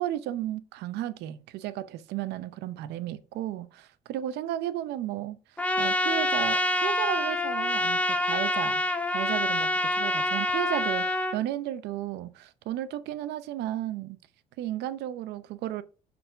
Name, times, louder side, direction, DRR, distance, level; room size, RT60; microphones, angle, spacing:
voice 1, 0.0-5.4 5.8-14.2 14.6-15.8, right 13 dB, 80° right, 0.7 m, -34 dB
Trumpet, 5.6-11.4, left 1 dB, 10° left, 0.9 m, -26 dB
6.6 x 4.2 x 5.6 m
cardioid pair, 110°, 17 cm